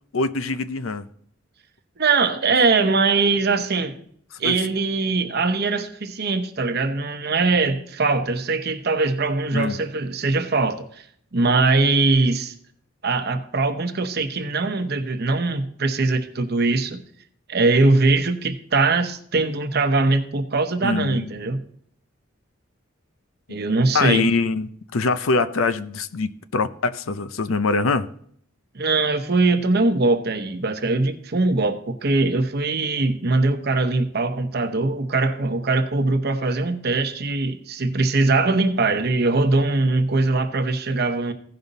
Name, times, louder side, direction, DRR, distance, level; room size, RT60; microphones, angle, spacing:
voice 1, 0.1-1.1 4.4-4.6 9.5-9.8 20.8-21.3 23.9-28.1, left 3 dB, 80° left, 0.6 m, -23 dB
voice 2, 2.0-4.0 4.4-11.0 11.3-12.5 13.0-17.0 17.5-21.6 23.5-24.3 28.7-41.3, right 3 dB, 50° right, 0.9 m, -21 dB
16.0 x 5.4 x 4.0 m
head